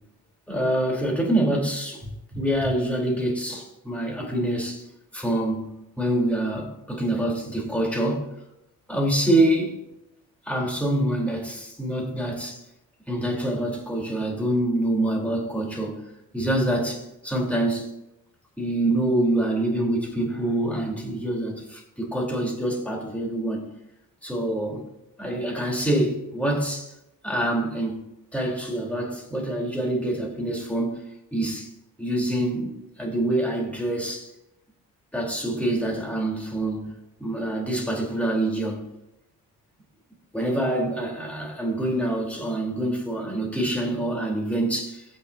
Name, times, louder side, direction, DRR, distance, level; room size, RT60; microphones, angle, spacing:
voice 1, 0.5-4.9 5.1-8.3 8.9-9.8 10.5-12.6 13.1-16.0 16.3-17.9 18.6-23.7 24.2-24.8 25.2-26.9 27.2-28.1 28.3-31.0 31.3-31.7 32.0-34.3 35.1-36.9 37.2-38.9 40.3-45.1, right 1 dB, 5° left, 4.1 m, -26 dB
16.0 x 6.6 x 2.9 m
hypercardioid pair, 45°, 46 cm